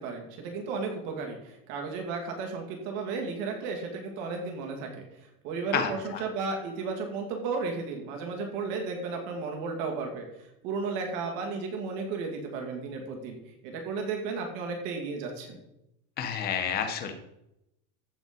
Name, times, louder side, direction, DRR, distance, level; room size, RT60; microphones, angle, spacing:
voice 1, 0.0-5.1 5.4-10.3 10.6-13.4 13.6-15.6, right 4 dB, 40° right, 2 dB, 2.6 m, -34 dB
voice 2, 5.7-6.2 16.2-17.1, left 7 dB, 20° left, 6 dB, 0.9 m, -30 dB
14.5 x 5.1 x 5.2 m, 0.85 s
supercardioid pair, 180°, 47 cm